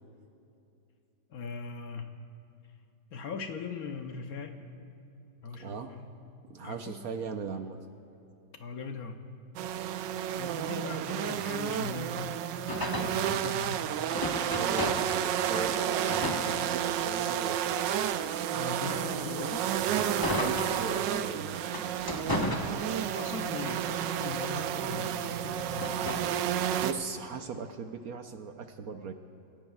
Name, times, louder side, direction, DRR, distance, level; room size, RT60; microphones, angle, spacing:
voice 1, 1.3-2.1 3.1-4.6 5.4-6.2 6.6-7.0 8.6-9.2 10.4-12.3 12.8-13.9 18.5-19.7 23.0-26.1, left 5 dB, 60° left, 5 dB, 1.1 m, -40 dB
voice 2, 5.6-5.9 6.4-7.8 14.5-17.8 20.3-21.7 26.8-29.1, right 5 dB, 65° right, 6 dB, 1.0 m, -38 dB
sound 1, 9.6-26.9, right 10 dB, 85° right, 1.3 m, -31 dB
sound 2, 12.7-15.3 15.5-17.2 17.7-21.2 21.7-23.3 23.7-26.4, left 1 dB, 15° left, 0.8 m, -36 dB
28.5 x 16.0 x 2.3 m, 2.7 s
omnidirectional pair, 1.9 m